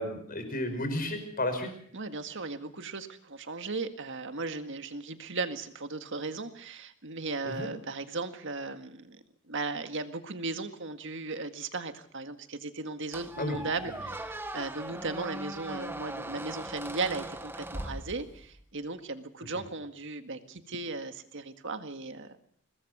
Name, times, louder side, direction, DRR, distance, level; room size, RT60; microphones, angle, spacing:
voice 1, 0.0-1.7 7.5-7.7 13.4-13.6, left 1 dB, 40° left, 7 dB, 5.3 m, -32 dB
voice 2, 1.9-22.4, right 3 dB, 60° right, 8 dB, 1.9 m, -37 dB
Squeak, 13.1-18.6, right 1 dB, 10° right, 1.2 m, -40 dB
22.5 x 19.5 x 6.8 m, 0.63 s
head